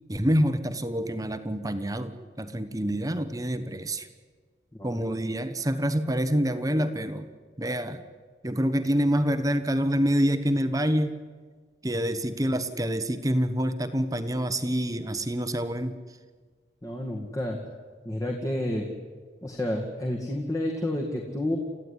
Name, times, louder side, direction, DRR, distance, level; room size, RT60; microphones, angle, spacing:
voice 1, 0.1-4.1 4.8-7.3 7.6-8.0 8.4-11.1 11.8-16.0, equal, 20° right, 10 dB, 1.2 m, -26 dB
voice 2, 16.8-17.6 18.0-18.9 19.4-21.6, left 1 dB, 20° left, 0 dB, 2.2 m, -30 dB
29.5 x 14.5 x 9.9 m, 1.5 s
head